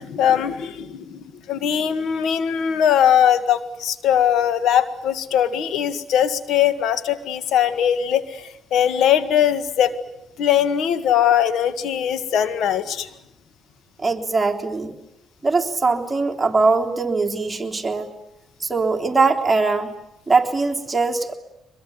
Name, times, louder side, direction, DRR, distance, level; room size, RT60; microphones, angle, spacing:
voice 1, 0.0-9.9 10.4-13.1, left 9 dB, 80° left, 12 dB, 1.7 m, -20 dB
voice 2, 14.0-14.9 15.4-18.1 18.7-19.9 20.3-21.3, right 3 dB, 15° right, 2 dB, 3.5 m, -21 dB
24.5 x 22.0 x 9.6 m, 0.89 s
cardioid pair, 90°, 0 cm